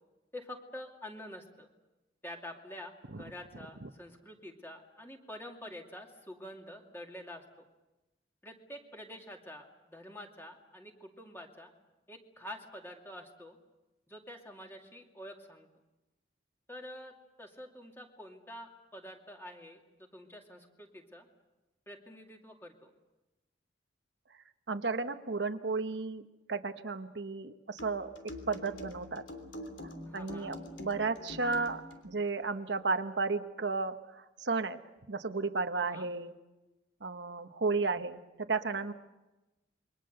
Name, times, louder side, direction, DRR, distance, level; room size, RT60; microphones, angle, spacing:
voice 1, 0.3-1.7 2.2-7.4 8.4-11.7 12.1-13.6 14.1-15.7 16.7-21.3 21.9-22.9 30.0-30.6 35.7-36.1, left 1 dB, 15° left, 2 dB, 2.5 m, -47 dB
voice 2, 24.7-26.2 26.5-28.1 28.5-29.2 30.1-34.8 35.1-36.3 37.0-38.9, right 4 dB, 80° right, 8 dB, 1.1 m, -33 dB
sound 1, 27.8-32.1, left 1 dB, 85° left, 3.2 m, -45 dB
27.5 x 23.0 x 6.7 m, 1.0 s
head